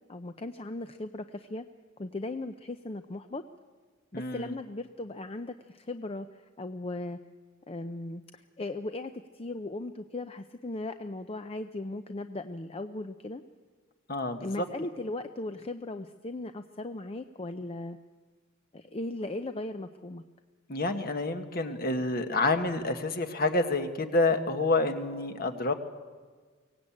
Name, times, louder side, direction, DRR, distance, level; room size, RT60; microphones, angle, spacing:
voice 1, 0.1-1.7 2.0-3.4 4.1-7.2 7.7-13.4 14.4-18.0 18.7-20.2, left 2 dB, 30° left, 8 dB, 0.6 m, -37 dB
voice 2, 4.1-4.5 14.1-14.6 20.7-25.7, left 2 dB, 50° left, 7 dB, 1.5 m, -28 dB
23.5 x 18.0 x 8.7 m, 1.5 s
head